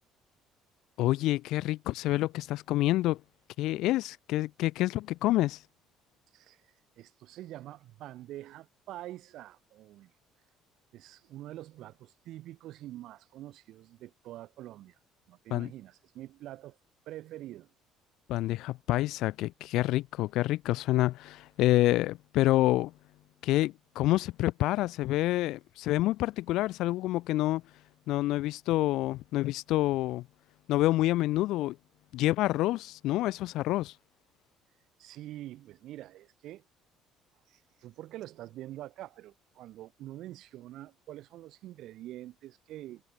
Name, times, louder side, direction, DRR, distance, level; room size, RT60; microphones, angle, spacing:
voice 1, 1.0-3.2 3.6-5.6 15.5-15.7 18.3-22.9 23.4-27.6 28.1-30.2 30.7-31.8 32.1-33.9, left 16 dB, 70° left, 0.8 m, -27 dB
voice 2, 6.3-10.1 10.9-15.0 15.3-16.8 17.1-17.7 35.0-36.6 37.5-43.0, right 14 dB, 65° right, 4.4 m, -45 dB
cardioid pair, 135°, 0 cm